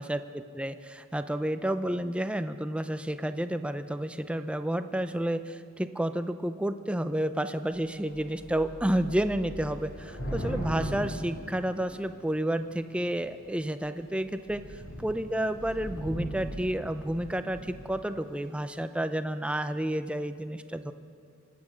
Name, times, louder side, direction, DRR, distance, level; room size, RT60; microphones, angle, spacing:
voice 1, 0.0-14.6 15.0-20.9, right 1 dB, 5° right, 10 dB, 0.4 m, -30 dB
Thunder / Rain, 7.7-7.9 8.1-12.3 13.0-13.4 13.8-14.0 14.3-18.0, equal, 60° left, 3.6 m, -38 dB
25.5 x 8.6 x 6.4 m, 2.4 s
head